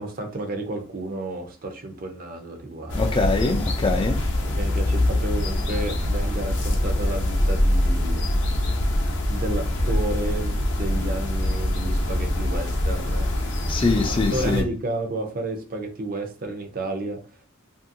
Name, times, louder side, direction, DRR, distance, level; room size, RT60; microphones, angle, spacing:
voice 1, 0.0-3.0 4.6-8.3 9.3-13.3 14.3-17.2, right 2 dB, 45° right, 0.5 m, -31 dB
sound 1, 2.9-14.6, left 1 dB, 55° left, 0.7 m, -24 dB
voice 2, 2.9-4.2 13.7-14.6, left 3 dB, 25° left, 0.3 m, -23 dB
2.7 x 2.6 x 2.6 m
head